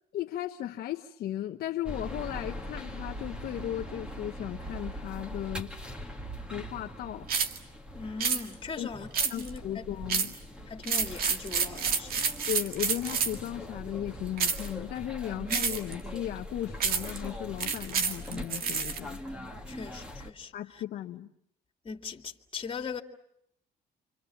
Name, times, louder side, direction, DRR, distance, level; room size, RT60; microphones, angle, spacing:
voice 1, 0.1-5.7 6.5-7.3 8.8-8.9 9.3-10.4 12.5-19.2 20.5-21.3, left 12 dB, 65° left, 1.1 m, -36 dB
sound 1, 1.8-20.3, equal, 5° right, 2.2 m, -42 dB
sound 2, 7.3-7.6 8.2-8.4 9.1-9.6 10.1-10.4 10.8-13.5 14.4-14.7 15.5-15.9 16.8-17.2 17.6-19.0, right 6 dB, 60° right, 2.1 m, -29 dB
voice 2, 7.9-9.9 10.7-12.2 19.7-20.8 21.8-23.0, left 5 dB, 30° left, 2.5 m, -40 dB
29.5 x 26.0 x 7.2 m
cardioid pair, 110°, 17 cm